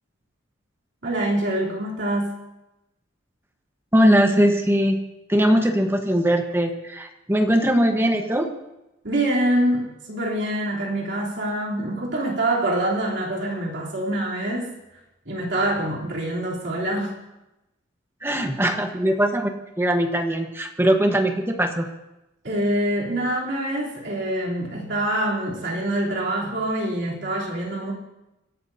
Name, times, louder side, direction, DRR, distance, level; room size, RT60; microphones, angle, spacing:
voice 1, 1.0-2.3 9.0-14.7 15.2-17.1 22.4-27.9, right 1 dB, 60° right, -4 dB, 3.4 m, -25 dB
voice 2, 3.9-5.0 5.3-8.5 18.2-19.5 19.8-21.9, equal, 10° right, 4 dB, 1.2 m, -20 dB
24.5 x 11.5 x 2.8 m, 0.94 s
head